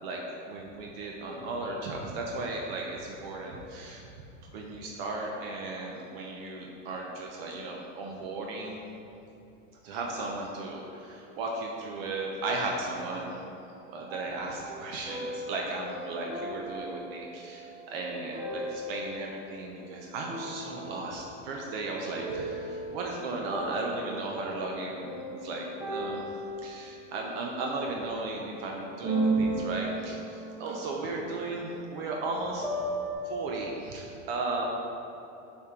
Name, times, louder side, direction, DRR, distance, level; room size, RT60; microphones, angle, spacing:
voice 1, 0.0-4.1 4.4-8.8 9.8-13.4 13.9-32.7 33.2-34.7, right 2 dB, 50° right, -1 dB, 0.7 m, -35 dB
sound 1, 14.1-19.5 20.3-21.9 22.1-23.4 25.0-28.1 29.0-33.1, right 2 dB, 10° right, 0.5 m, -36 dB
7.0 x 4.5 x 3.7 m, 2.9 s
supercardioid pair, 160°, 39 cm